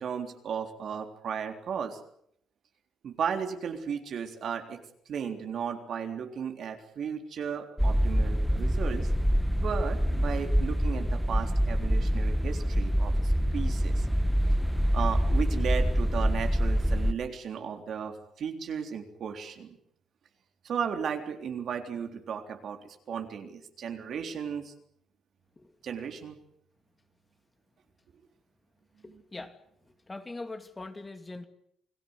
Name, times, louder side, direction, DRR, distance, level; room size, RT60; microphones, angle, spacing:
voice 1, 0.0-2.0 3.0-4.8 5.1-9.1 9.6-14.1 14.9-19.8 20.6-24.7 25.8-26.4 29.1-29.2, right 7 dB, 65° right, 5 dB, 3.6 m, -35 dB
sound 1, 7.8-17.1, equal, ahead, 1.4 m, -26 dB
voice 2, 29.0-31.5, left 2 dB, 20° left, 8 dB, 2.6 m, -42 dB
29.0 x 19.0 x 8.2 m, 0.71 s
cardioid pair, 90°, 0 cm